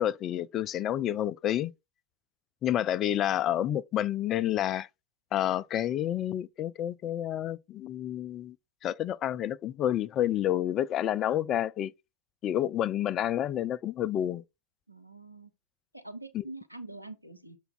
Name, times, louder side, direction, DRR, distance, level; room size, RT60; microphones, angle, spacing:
voice 1, 0.0-1.7 2.6-4.9 5.3-8.5 8.8-11.9 12.4-14.4 16.3-16.4, left 11 dB, 30° left, 0.3 m, -29 dB
voice 2, 14.9-15.5 15.9-17.6, right 2 dB, 90° right, 0.9 m, -44 dB
6.8 x 4.6 x 3.8 m
figure-of-eight pair, 90°, 0 cm